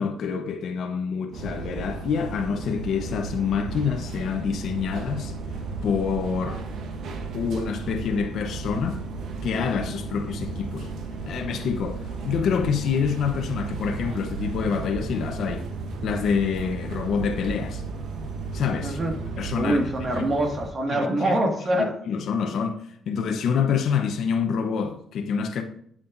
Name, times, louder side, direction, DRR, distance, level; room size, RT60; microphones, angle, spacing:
voice 1, 0.0-5.3 5.8-6.6 7.3-9.0 9.4-10.9 11.3-15.7 16.0-17.8 18.5-19.0 19.4-19.8 20.2-20.3 20.9-21.1 22.1-25.6, left 6 dB, 70° left, 0.9 m, -27 dB
sound 1, 1.3-20.7, right 4 dB, 75° right, 1.2 m, -34 dB
voice 2, 18.8-19.2 19.6-21.9, right 1 dB, 35° right, 1.9 m, -24 dB
8.4 x 7.5 x 2.6 m
cardioid pair, 90°, 0 cm